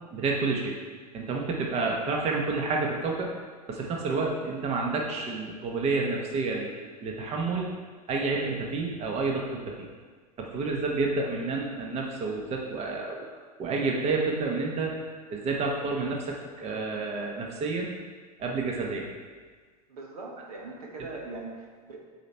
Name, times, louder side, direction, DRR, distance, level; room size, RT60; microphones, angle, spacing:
voice 1, 0.1-0.8 1.1-3.3 3.7-7.7 8.1-9.9 10.4-13.2 13.6-14.9 15.3-17.9 18.4-19.1, right 3 dB, 30° right, 0 dB, 1.1 m, -29 dB
voice 2, 19.9-22.0, right 3 dB, 70° right, 0 dB, 1.4 m, -41 dB
8.2 x 4.4 x 4.3 m, 1.5 s
figure-of-eight pair, 90°, 20 cm